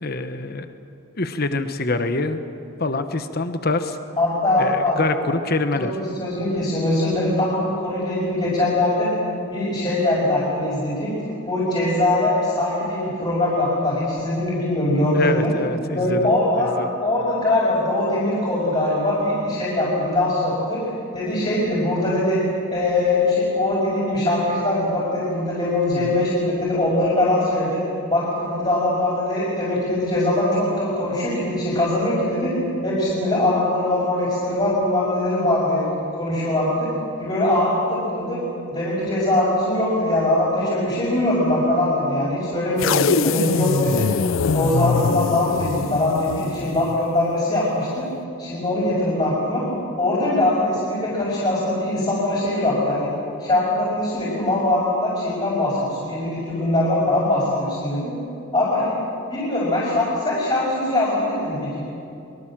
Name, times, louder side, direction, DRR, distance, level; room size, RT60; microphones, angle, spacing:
voice 1, 0.0-0.7 1.2-2.4 2.8-4.0 4.6-5.9 15.1-16.2 16.6-16.9 25.9-26.2 42.8-42.9, left 2 dB, 45° left, 9 dB, 1.1 m, -25 dB
voice 2, 4.2-5.0 5.7-9.1 9.5-11.1 11.5-15.5 15.9-16.8 17.0-22.4 22.7-27.8 28.1-32.5 32.8-36.9 37.2-38.4 38.7-44.0 44.5-48.0 48.4-49.6 50.0-53.1 53.4-58.1 58.5-59.0 59.3-61.8, left 1 dB, 25° left, -8 dB, 5.7 m, -22 dB
sound 1, 42.8-47.1, left 5 dB, 70° left, 0.5 m, -23 dB
24.5 x 23.0 x 7.5 m, 2.6 s
head